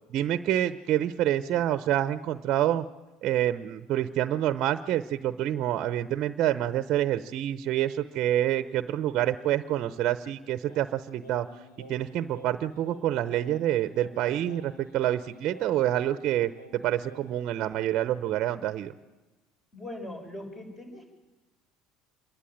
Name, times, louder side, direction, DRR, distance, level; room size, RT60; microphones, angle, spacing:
voice 1, 0.1-2.8 3.2-11.5 11.9-18.9, right 12 dB, 55° right, 11 dB, 0.8 m, -27 dB
Singing, 10.7-17.5, equal, 90° left, 3.6 m, -51 dB
voice 2, 19.7-21.1, left 1 dB, 25° left, 3 dB, 6.7 m, -40 dB
27.0 x 11.5 x 9.2 m, 1.2 s
supercardioid pair, 90°, 0 cm